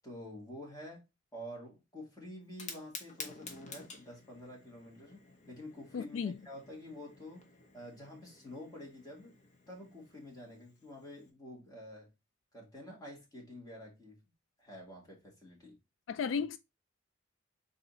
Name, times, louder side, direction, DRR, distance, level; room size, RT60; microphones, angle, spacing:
voice 1, 0.0-1.0 1.3-7.4 7.7-9.3 9.7-12.1 12.5-14.2 14.6-15.8, left 1 dB, 20° left, 1.8 m, -48 dB
Fire, 2.4-11.3, left 4 dB, 40° left, 0.9 m, -52 dB
voice 2, 5.9-6.4 16.1-16.6, left 6 dB, 85° left, 0.3 m, -34 dB
4.0 x 2.7 x 3.9 m
head